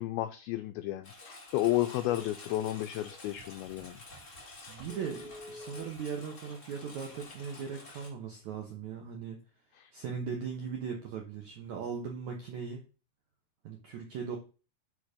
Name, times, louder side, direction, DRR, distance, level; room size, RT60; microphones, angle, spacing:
voice 1, 0.0-4.0 9.8-9.9, left 15 dB, 90° left, 9 dB, 2.1 m, -32 dB
Engine, 1.0-8.1, left 2 dB, 30° left, 1.3 m, -50 dB
Telephone, 1.5-1.7 2.0-3.1 3.7-3.8 4.2-4.3 4.8-5.9 7.1-7.7, left 2 dB, 60° left, 0.8 m, -48 dB
voice 2, 4.7-9.4 9.9-12.8 13.6-14.4, right 6 dB, 75° right, 1 dB, 1.7 m, -39 dB
11.0 x 3.6 x 5.1 m, 0.33 s
omnidirectional pair, 4.9 m